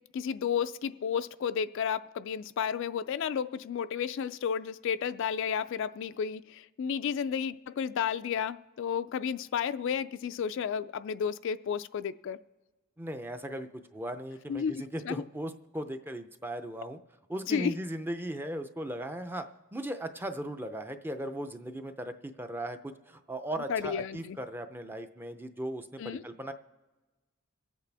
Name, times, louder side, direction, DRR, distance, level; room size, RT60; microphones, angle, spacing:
voice 1, 0.1-12.4 14.5-14.7 15.0-15.2 17.5-17.7 23.7-24.4 26.0-26.2, left 7 dB, 60° left, 0.3 m, -32 dB
voice 2, 13.0-17.0 17.3-26.5, right 1 dB, 10° right, 0.5 m, -38 dB
24.5 x 8.3 x 3.4 m
head